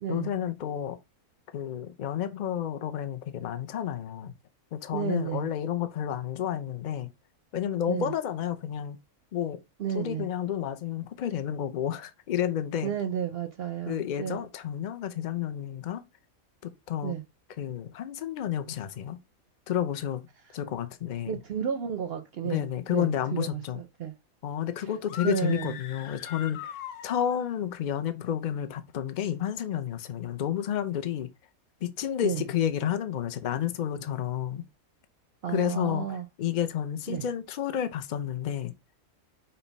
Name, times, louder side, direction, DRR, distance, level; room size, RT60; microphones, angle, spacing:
voice 1, 0.1-1.0 1.5-4.3 4.7-7.1 7.5-9.0 9.3-9.6 9.9-12.9 13.9-16.0 16.6-17.2 17.6-19.2 19.7-20.2 20.5-21.3 22.4-23.8 24.4-26.8 27.0-31.3 31.8-34.7 35.5-36.1 36.4-38.7, left 10 dB, 85° left, 0.4 m, -31 dB
voice 2, 4.9-5.5 7.9-8.1 9.8-10.3 12.8-14.4 17.0-17.2 21.3-24.1 25.2-25.7 32.2-32.5 35.4-36.3 37.1-37.2, right 9 dB, 60° right, 0.6 m, -32 dB
sound 1, 25.0-27.6, left 9 dB, 70° left, 0.9 m, -41 dB
5.5 x 2.2 x 4.0 m
omnidirectional pair, 1.5 m